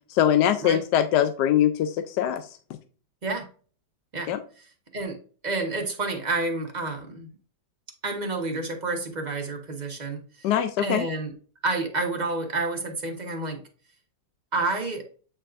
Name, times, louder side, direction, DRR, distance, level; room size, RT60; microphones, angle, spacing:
voice 1, 0.1-2.5 4.3-4.4 10.4-11.1, left 10 dB, 75° left, 9 dB, 1.1 m, -22 dB
voice 2, 5.4-7.3 8.0-10.5 10.8-11.3 11.6-13.6 14.5-15.0, right 3 dB, 25° right, 2 dB, 1.1 m, -29 dB
8.6 x 4.5 x 2.5 m, 0.40 s
omnidirectional pair, 2.0 m